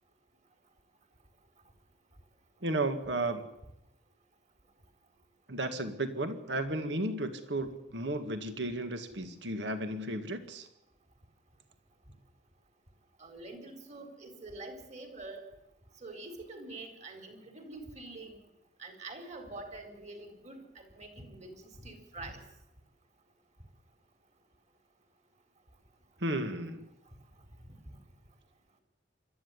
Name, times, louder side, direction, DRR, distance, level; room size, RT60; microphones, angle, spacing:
voice 1, 2.6-3.4 5.5-10.7 26.2-26.9, right 2 dB, 85° right, 8 dB, 1.9 m, -34 dB
voice 2, 13.2-15.5 16.0-18.4 18.8-22.4 27.1-27.2 27.7-28.0, right 2 dB, 40° right, 6 dB, 4.1 m, -46 dB
26.5 x 13.0 x 9.7 m, 0.89 s
head